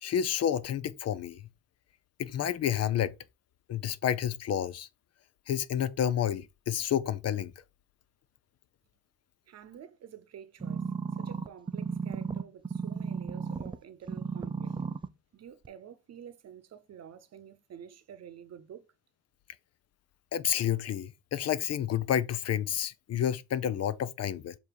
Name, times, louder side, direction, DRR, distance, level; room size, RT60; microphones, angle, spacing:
voice 1, 0.0-1.4 2.2-3.1 3.7-4.9 5.5-7.5 20.3-24.5, left 9 dB, 55° left, 0.6 m, -30 dB
voice 2, 9.5-10.8 11.1-14.8 15.3-18.8, right 9 dB, 55° right, 0.9 m, -49 dB
sound 1, 10.6-13.8 14.1-15.1 15.6-15.7, right 5 dB, 15° right, 0.5 m, -34 dB
7.5 x 2.8 x 4.7 m
cardioid pair, 90°, 30 cm